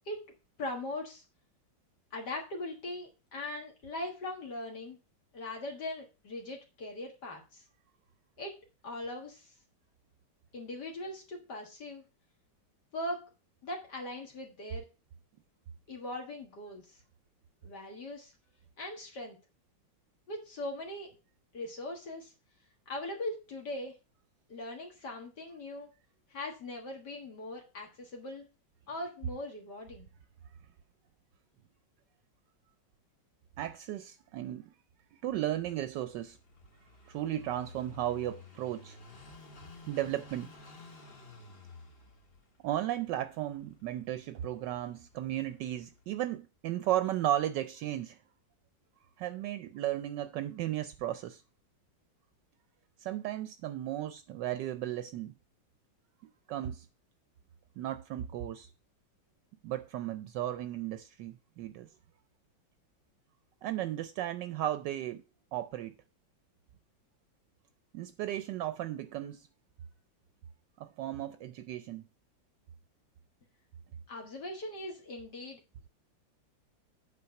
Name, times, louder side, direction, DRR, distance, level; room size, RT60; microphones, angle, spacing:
voice 1, 0.6-1.2 2.1-5.0 5.3-7.6 8.4-8.6 8.8-9.5 10.5-12.0 12.9-13.3 13.6-14.8 15.9-17.0 17.6-18.3 18.8-19.4 20.3-21.1 21.5-22.3 22.9-23.9 24.5-25.9 26.3-28.5 28.9-30.1 74.1-75.6, left 1 dB, 60° left, 2.2 m, -40 dB
voice 2, 33.6-34.7 35.2-36.4 37.1-39.0 39.9-40.5 42.6-48.2 49.2-51.4 53.0-55.3 56.5-56.9 57.8-58.7 59.6-61.9 63.6-65.2 65.5-65.9 67.9-69.5 70.8-72.1, right 13 dB, 75° right, 1.1 m, -35 dB
Car passing by / Idling, 35.5-46.1, left 3 dB, 35° left, 1.3 m, -54 dB
8.5 x 4.2 x 5.7 m
omnidirectional pair, 2.0 m